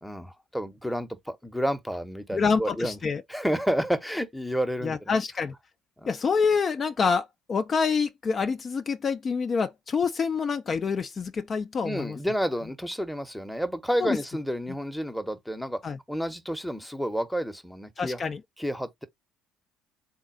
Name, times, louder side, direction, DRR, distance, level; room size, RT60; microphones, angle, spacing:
voice 1, 0.0-3.0 3.3-5.2 6.0-6.1 11.8-15.8 16.1-18.2 18.6-19.1, equal, ahead, 0.8 m, -30 dB
voice 2, 2.3-3.2 4.8-5.5 6.1-12.2 14.0-14.2 15.8-16.0 18.0-18.4, left 5 dB, 35° left, 0.4 m, -27 dB
3.9 x 2.2 x 3.8 m
figure-of-eight pair, 55°, 0 cm